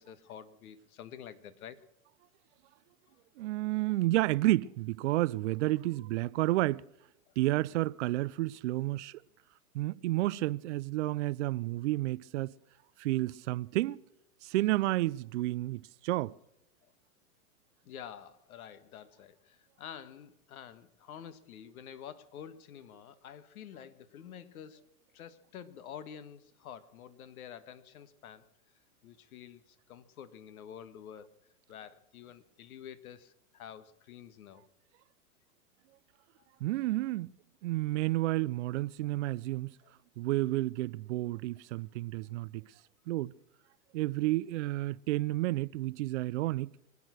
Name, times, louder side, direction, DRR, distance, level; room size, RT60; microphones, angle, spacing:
voice 1, 0.0-1.8 17.8-28.4 29.0-31.3 31.7-34.6 39.8-39.9, left 9 dB, 65° left, 1.7 m, -49 dB
voice 2, 3.4-6.8 7.4-9.2 9.7-12.5 13.0-14.0 14.4-16.3 36.6-37.3 37.6-39.7 40.2-42.6 43.1-43.3 43.9-46.7, right 17 dB, 50° right, 0.5 m, -31 dB
24.0 x 8.7 x 6.2 m
hypercardioid pair, 135°, 45 cm